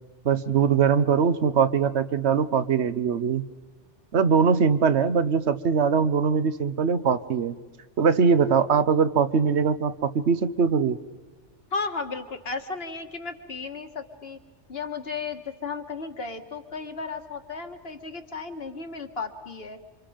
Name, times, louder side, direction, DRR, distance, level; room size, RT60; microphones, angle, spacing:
voice 1, 0.2-3.4 4.1-7.6 8.0-11.0, right 6 dB, 70° right, 12 dB, 1.2 m, -22 dB
voice 2, 11.7-14.4 14.7-19.8, left 4 dB, 60° left, 6 dB, 1.9 m, -34 dB
28.5 x 26.5 x 5.1 m, 1.3 s
omnidirectional pair, 1.2 m